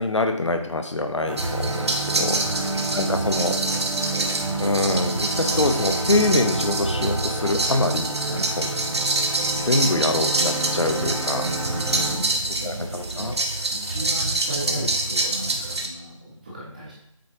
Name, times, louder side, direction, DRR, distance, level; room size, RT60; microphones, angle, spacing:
voice 1, 0.0-2.4 2.9-3.6 4.6-8.2 8.6-8.7 9.6-11.5 12.6-13.3 14.7-14.8, left 2 dB, 60° left, 6 dB, 0.9 m, -24 dB
sound 1, 1.3-12.2, right 2 dB, 70° right, 2.6 m, -30 dB
sound 2, 1.4-15.9, right 2 dB, 50° right, 1.0 m, -26 dB
voice 2, 2.3-2.9 8.2-8.6 11.4-16.9, right 1 dB, 15° right, -6 dB, 1.2 m, -36 dB
8.2 x 6.5 x 2.9 m, 0.74 s
figure-of-eight pair, 170°, 18 cm